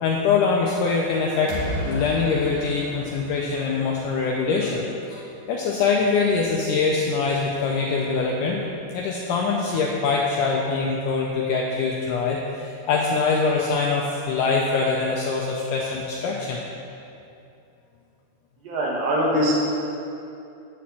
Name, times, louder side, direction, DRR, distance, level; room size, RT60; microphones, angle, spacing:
voice 1, 0.0-8.6 8.9-16.6, left 4 dB, 90° left, -1 dB, 1.8 m, -23 dB
sound 1, 1.5-4.4, left 1 dB, 55° left, 1.3 m, -32 dB
voice 2, 18.6-19.6, equal, 70° right, -4 dB, 3.1 m, -22 dB
9.2 x 4.3 x 7.5 m, 2.7 s
omnidirectional pair, 4.4 m